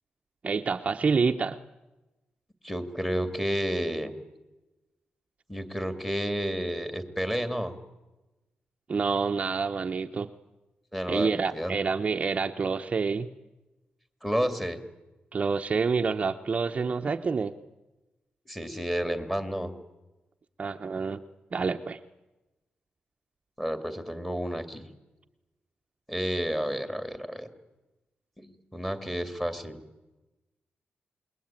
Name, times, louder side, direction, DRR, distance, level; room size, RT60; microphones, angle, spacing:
voice 1, 0.4-1.6 8.9-10.3 11.1-13.3 15.3-17.5 20.6-21.2 21.5-22.0, right 5 dB, 35° right, 6 dB, 0.8 m, -27 dB
voice 2, 2.6-4.1 5.5-7.7 10.9-11.8 14.2-14.8 18.5-19.7 23.6-24.8 26.1-27.5 28.4-29.8, equal, 5° left, 9 dB, 2.5 m, -31 dB
27.5 x 21.5 x 9.0 m, 1.1 s
wide cardioid pair, 135°, 4 cm